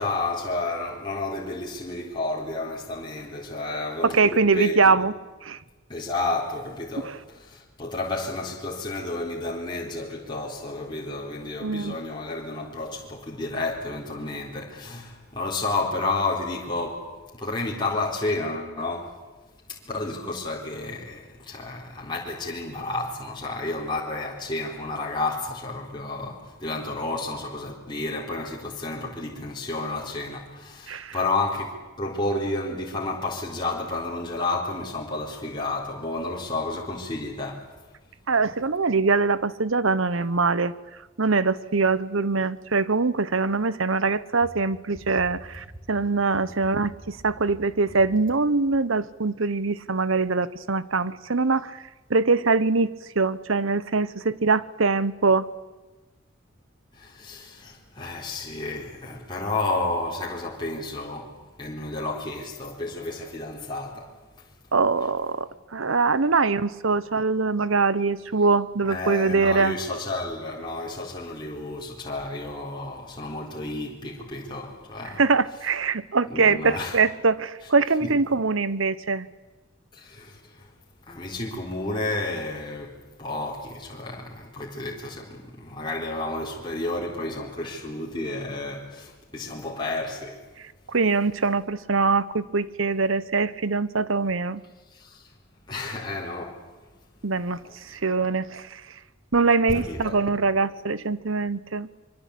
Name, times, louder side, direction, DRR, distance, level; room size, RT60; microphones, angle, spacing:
voice 1, 0.0-5.0 5.9-19.2 19.7-37.7 56.9-61.3 61.6-64.1 68.9-75.2 76.3-77.0 78.0-78.1 79.9-80.7 81.1-90.4 94.9-95.3 95.7-96.7 97.6-98.0 99.7-100.2, left 2 dB, 20° left, 4.1 m, -31 dB
voice 2, 4.0-5.1 5.4-5.6 7.0-7.2 11.6-12.0 30.9-31.1 38.3-40.7 41.2-51.8 52.1-55.5 64.7-65.5 65.7-69.8 75.2-79.3 90.9-94.6 97.2-97.6 97.9-98.8 99.3-101.9, right 4 dB, 75° right, 1.0 m, -23 dB
25.0 x 24.0 x 8.5 m
head